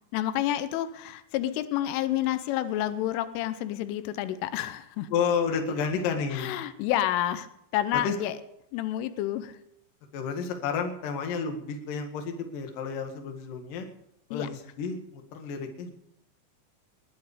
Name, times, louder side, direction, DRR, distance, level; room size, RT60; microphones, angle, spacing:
voice 1, 0.1-5.1 6.3-7.5 7.7-8.3 8.7-9.6 14.3-14.5, left 13 dB, 90° left, 12 dB, 3.4 m, -29 dB
voice 2, 5.1-6.5 7.9-8.1 10.1-13.9 14.3-15.9, left 6 dB, 55° left, 5 dB, 2.9 m, -31 dB
20.0 x 11.0 x 5.0 m, 0.81 s
omnidirectional pair, 5.5 m